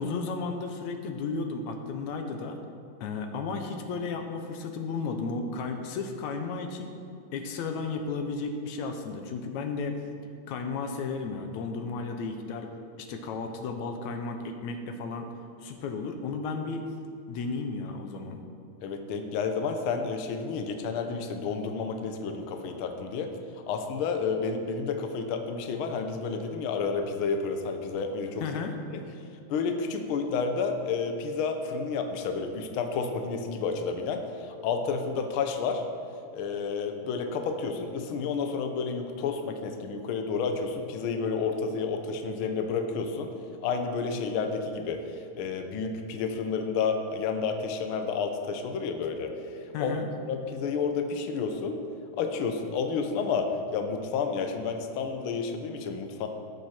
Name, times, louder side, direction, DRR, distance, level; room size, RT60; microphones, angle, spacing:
voice 1, 0.0-2.6 3.0-7.0 7.3-10.0 10.5-12.7 13.0-15.3 15.6-16.8 17.3-18.4 28.4-28.7 49.7-50.1, left 4 dB, 75° left, 5 dB, 2.1 m, -33 dB
voice 2, 18.8-23.3 23.7-28.5 28.9-29.0 29.5-35.8 36.3-43.3 43.6-50.0 50.3-51.8 52.2-56.3, left 5 dB, 90° left, 5 dB, 1.1 m, -30 dB
18.0 x 6.7 x 4.4 m, 2.6 s
omnidirectional pair, 3.5 m